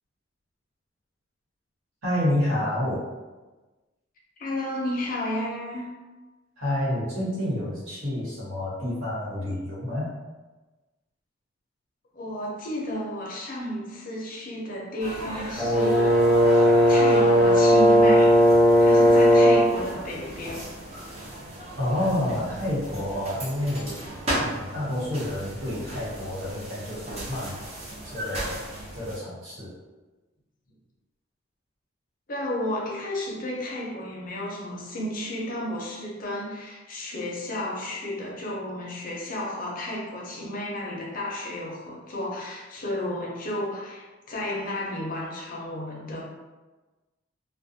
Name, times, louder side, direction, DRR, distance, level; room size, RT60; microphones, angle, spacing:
voice 1, 2.0-3.1 6.6-10.1 21.8-24.1 24.4-27.5 28.0-28.6 28.9-29.7, left 1 dB, 90° right, -9 dB, 1.3 m, -29 dB
voice 2, 4.4-5.9 12.1-16.5 16.9-18.4 18.8-20.7 32.3-46.2, left 1 dB, 45° left, -3 dB, 0.5 m, -32 dB
sound 1, 15.0-29.2, right 1 dB, 30° right, 0.6 m, -36 dB
Brass instrument, 15.6-19.7, equal, 5° left, 0.7 m, -17 dB
2.4 x 2.1 x 2.6 m, 1.2 s
head